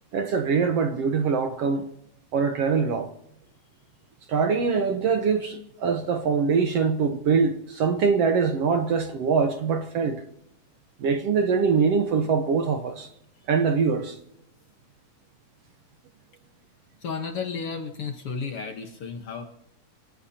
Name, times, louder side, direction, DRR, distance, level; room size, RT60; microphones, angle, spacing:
voice 1, 0.1-1.9 2.3-3.1 4.3-10.2 11.0-13.1 13.5-14.2, right 5 dB, 65° right, 1.7 m, -23 dB
voice 2, 17.0-19.4, left 5 dB, 55° left, 1.8 m, -33 dB
26.0 x 18.0 x 2.9 m
omnidirectional pair, 3.7 m